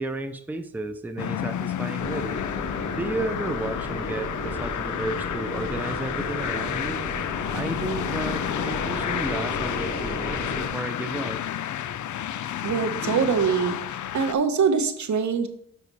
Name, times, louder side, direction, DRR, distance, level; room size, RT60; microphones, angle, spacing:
voice 1, 0.0-2.4 2.9-7.0 7.5-11.4, right 2 dB, 5° right, 9 dB, 0.6 m, -33 dB
sound 1, 1.2-14.3, left 10 dB, 65° left, 0.5 m, -31 dB
sound 2, 2.0-10.7, left 2 dB, 35° left, 2.0 m, -33 dB
voice 2, 12.6-13.8 14.1-15.5, right 6 dB, 60° right, 9 dB, 1.0 m, -23 dB
7.3 x 5.7 x 4.1 m, 0.68 s
cardioid pair, 80°, 32 cm